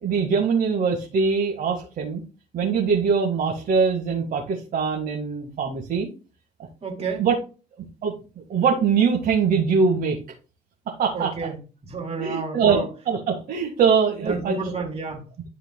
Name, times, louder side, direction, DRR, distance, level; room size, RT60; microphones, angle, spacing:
voice 1, 0.0-2.2 2.5-6.1 7.2-7.3 8.0-8.1 8.5-10.2 10.9-11.3 12.2-14.6, right 5 dB, 60° right, 0 dB, 2.0 m, -22 dB
voice 2, 6.8-7.3 11.1-12.9 14.2-15.5, right 4 dB, 35° right, 1 dB, 3.3 m, -31 dB
12.5 x 5.0 x 2.3 m, 0.33 s
cardioid pair, 110°, 17 cm